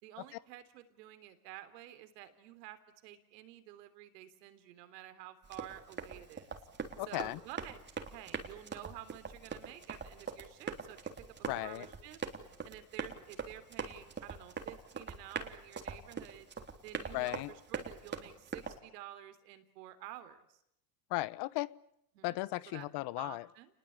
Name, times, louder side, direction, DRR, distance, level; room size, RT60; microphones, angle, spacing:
voice 1, 0.0-6.6 7.1-7.8 8.1-11.3 11.6-12.2 12.6-16.5 16.8-20.6 22.2-22.4 22.7-22.9 23.2-23.7, right 13 dB, 75° right, 10 dB, 3.6 m, -51 dB
Run, 5.4-18.8, right 5 dB, 20° right, 3.6 m, -43 dB
voice 2, 7.0-7.4 11.5-11.9 17.1-17.5 21.1-21.7 22.2-23.5, left 19 dB, 50° left, 20 dB, 1.1 m, -36 dB
30.0 x 20.5 x 8.9 m, 0.79 s
supercardioid pair, 100°, 50 cm